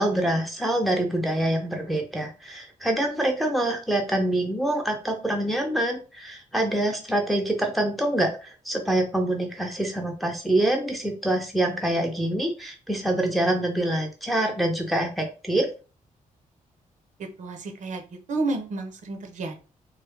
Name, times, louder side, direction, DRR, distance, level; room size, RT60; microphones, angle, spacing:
voice 1, 0.0-15.7, right 1 dB, ahead, 3 dB, 0.6 m, -25 dB
voice 2, 17.2-19.6, right 2 dB, 60° right, 5 dB, 0.7 m, -31 dB
3.2 x 2.1 x 3.4 m, 0.34 s
cardioid pair, 120°, 14 cm